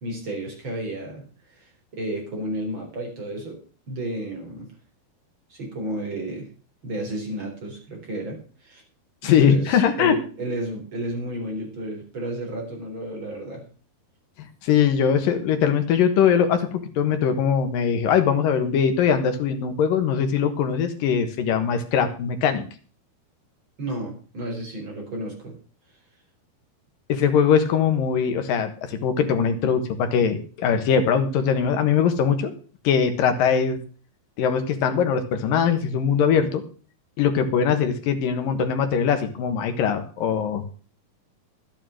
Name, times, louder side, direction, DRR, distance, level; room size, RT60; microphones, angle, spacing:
voice 1, 0.0-3.6 3.9-4.7 5.5-6.5 6.8-8.8 9.2-13.6 23.8-25.5, right 1 dB, 30° right, 1 dB, 4.2 m, -32 dB
voice 2, 9.2-10.1 14.4-22.6 27.1-32.5 32.8-33.8 34.4-36.6 37.2-40.6, left 7 dB, 65° left, 8 dB, 2.9 m, -21 dB
12.0 x 8.9 x 6.3 m, 0.39 s
omnidirectional pair, 4.5 m